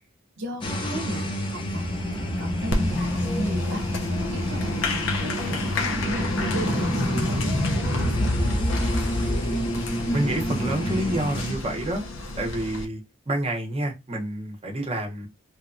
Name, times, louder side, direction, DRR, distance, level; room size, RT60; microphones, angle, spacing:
voice 1, 0.4-1.8 2.1-3.1 3.4-3.9 4.2-8.8, right 1 dB, 70° right, 0.6 m, -36 dB
sound 1, 0.6-11.5, equal, 25° left, 0.5 m, -27 dB
Applause, 2.7-12.8, left 2 dB, 80° left, 0.6 m, -31 dB
voice 2, 10.1-12.0 12.4-13.0 13.3-15.3, right 1 dB, 30° right, 0.7 m, -28 dB
2.8 x 2.2 x 2.5 m
head